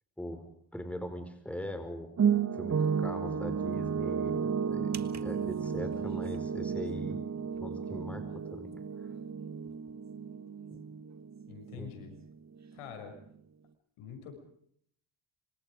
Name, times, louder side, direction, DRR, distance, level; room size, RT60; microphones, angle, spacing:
voice 1, 0.7-2.1 2.5-7.2 7.6-8.8 10.7-10.8 11.7-11.9, equal, 5° left, 8 dB, 5.0 m, -41 dB
sound 1, 2.2-12.3 12.6-12.8, right 7 dB, 35° right, 1.6 m, -33 dB
voice 2, 11.5-12.2 12.7-13.2 14.0-14.3, left 8 dB, 85° left, 7 dB, 6.8 m, -45 dB
26.5 x 25.0 x 5.1 m, 0.66 s
cardioid pair, 100°, 50 cm